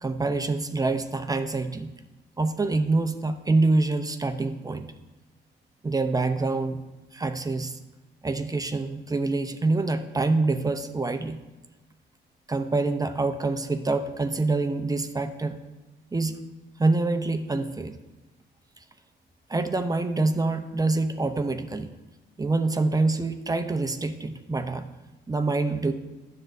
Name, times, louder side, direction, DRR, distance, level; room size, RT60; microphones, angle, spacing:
voice 1, 0.0-1.9 2.4-4.9 5.8-6.8 7.1-7.8 8.2-11.4 12.5-15.6 16.1-16.4 16.8-17.9 19.5-21.9 22.4-24.9 25.3-25.9, right 3 dB, 20° right, 8 dB, 0.6 m, -26 dB
9.9 x 7.4 x 2.6 m, 1.1 s
cardioid pair, 90°, 20 cm